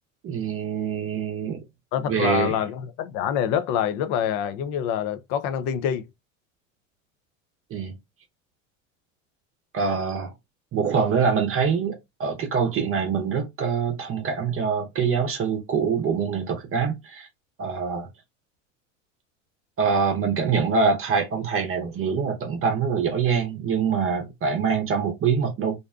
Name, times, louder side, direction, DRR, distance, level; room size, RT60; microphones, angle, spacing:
voice 1, 0.2-1.6 2.1-2.5 7.7-8.0 9.7-10.3 10.7-17.3 17.6-18.1 19.8-25.8, right 6 dB, 35° right, 0.7 m, -24 dB
voice 2, 1.9-6.1, left 9 dB, 50° left, 0.5 m, -26 dB
2.6 x 2.1 x 2.4 m
hypercardioid pair, 90°, 40 cm